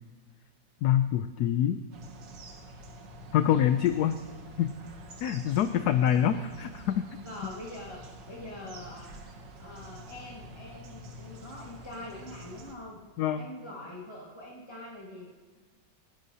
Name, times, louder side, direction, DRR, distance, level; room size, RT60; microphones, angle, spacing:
voice 1, 0.8-1.8 3.3-4.1 4.6-4.7 5.2-7.1 13.2-13.5, left 10 dB, 75° left, 10 dB, 1.0 m, -25 dB
sound 1, 1.9-12.8, right 1 dB, 90° right, 2.0 m, -47 dB
voice 2, 6.1-6.4 7.2-8.0 8.3-9.1 9.6-13.0 13.4-15.3, left 1 dB, 15° left, -5 dB, 1.7 m, -44 dB
28.5 x 11.5 x 2.8 m, 1.4 s
omnidirectional pair, 1.9 m